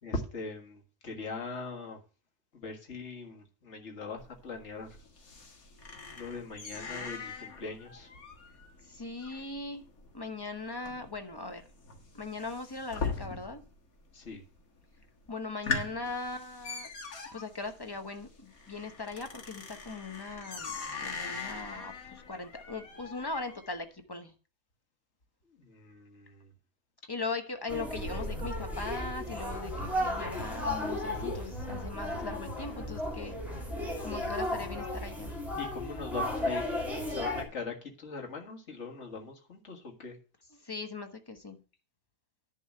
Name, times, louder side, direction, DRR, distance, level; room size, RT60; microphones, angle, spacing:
voice 1, 0.0-2.0 2.5-5.0 6.1-8.1 14.1-14.4 25.6-26.5 35.6-36.6 36.9-40.2, left 3 dB, 50° left, 2 dB, 2.0 m, -41 dB
sound 1, 4.2-13.8 14.0-14.6 15.0-15.1 15.4-23.8, left 4 dB, 70° left, 2.0 m, -41 dB
voice 2, 8.9-9.8 10.1-11.6 12.1-13.6 15.3-16.9 17.3-20.7 21.0-24.3 27.1-33.4 34.0-35.3 40.5-41.6, left 3 dB, 20° left, 7 dB, 0.8 m, -39 dB
sound 2, 27.7-37.4, left 1 dB, ahead, 2.6 m, -34 dB
11.0 x 3.9 x 7.5 m, 0.35 s
omnidirectional pair, 1.6 m